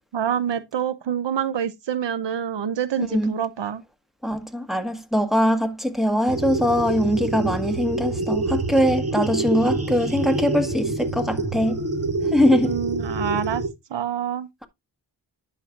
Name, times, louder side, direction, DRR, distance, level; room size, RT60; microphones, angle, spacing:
voice 1, 0.1-3.8 12.6-13.6 13.9-14.5, right 9 dB, 85° right, 0.8 m, -26 dB
voice 2, 4.2-11.8 12.3-12.8, equal, ahead, 1.6 m, -22 dB
sound 1, 6.3-13.7, right 2 dB, 35° right, 1.5 m, -26 dB
10.5 x 6.2 x 2.4 m
cardioid pair, 60°, 42 cm